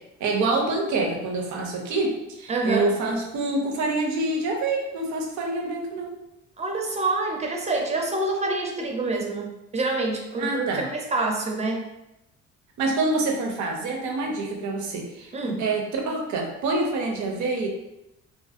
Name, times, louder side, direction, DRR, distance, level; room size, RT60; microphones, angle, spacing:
voice 1, 0.2-6.1 10.4-10.9 12.8-17.7, right 2 dB, 70° right, 1 dB, 0.5 m, -26 dB
voice 2, 2.5-2.9 6.6-11.9 15.3-15.6, right 2 dB, 20° right, 2 dB, 0.5 m, -27 dB
2.4 x 2.0 x 2.4 m, 0.88 s
cardioid pair, 90°, 30 cm